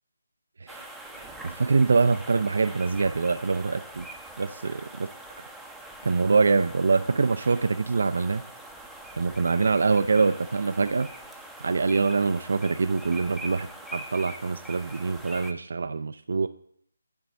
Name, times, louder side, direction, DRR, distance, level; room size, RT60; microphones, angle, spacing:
sound 1, 0.7-15.5, right 1 dB, ahead, 0.6 m, -43 dB
voice 1, 1.1-4.1 4.4-4.8 6.0-8.4 9.2-11.1 11.6-16.5, right 4 dB, 55° right, 10 dB, 0.3 m, -24 dB
8.0 x 4.0 x 6.5 m, 0.67 s
figure-of-eight pair, 150°, 0 cm